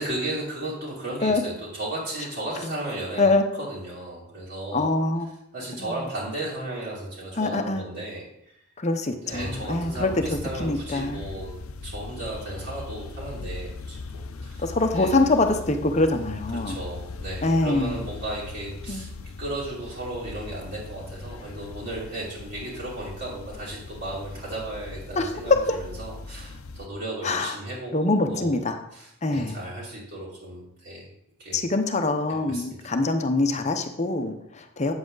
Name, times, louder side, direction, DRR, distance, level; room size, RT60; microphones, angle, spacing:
voice 1, 0.0-4.9 5.5-8.3 9.2-11.5 11.8-14.7 14.9-15.2 16.5-19.1 19.4-31.1 31.4-31.6 32.3-32.9, right 1 dB, 50° right, -7 dB, 2.8 m, -35 dB
voice 2, 4.7-5.3 5.8-5.9 7.4-7.9 8.8-11.2 14.6-16.8 17.4-18.0 18.9-19.1 25.2-25.8 27.2-27.6 27.9-28.8 29.2-29.6 31.5-34.9, left 2 dB, 30° left, 6 dB, 0.7 m, -24 dB
sound 1, 9.3-26.9, left 3 dB, 70° left, 0.6 m, -39 dB
8.7 x 7.6 x 3.9 m, 0.78 s
head